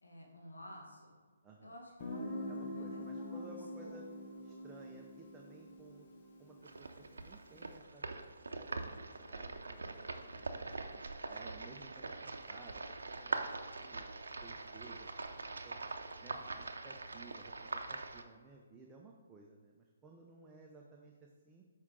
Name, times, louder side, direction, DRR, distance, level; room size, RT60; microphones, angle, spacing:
voice 1, 0.0-1.1 1.6-3.4 3.8-4.0, equal, 90° left, -1 dB, 1.2 m, -52 dB
voice 2, 1.4-1.7 2.5-4.1 4.4-6.1 6.4-8.1 8.5-8.8 9.1-10.9 11.3-13.5 13.8-14.1 14.4-15.8 16.2-21.6, right 3 dB, 15° right, -1 dB, 0.6 m, -57 dB
Guitar, 2.0-7.6, left 1 dB, 40° left, 1.1 m, -45 dB
sound 1, 6.6-18.2, right 3 dB, 80° right, 0.6 m, -43 dB
6.1 x 4.7 x 3.7 m, 1.5 s
hypercardioid pair, 145°, 0 cm